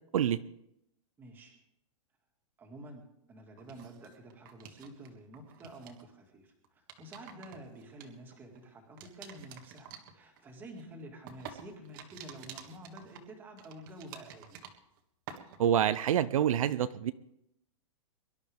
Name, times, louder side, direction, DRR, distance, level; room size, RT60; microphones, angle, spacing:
voice 1, 1.2-1.6 2.6-14.6, right 1 dB, 10° right, 2 dB, 2.1 m, -49 dB
sound 1, 3.6-5.1 5.3-6.0 6.6-8.6 9.0-15.0 15.3-15.9, right 8 dB, 40° right, 1.7 m, -50 dB
voice 2, 15.6-17.1, right 10 dB, 75° right, 13 dB, 0.7 m, -27 dB
23.5 x 12.0 x 3.6 m, 0.78 s
supercardioid pair, 175°, 18 cm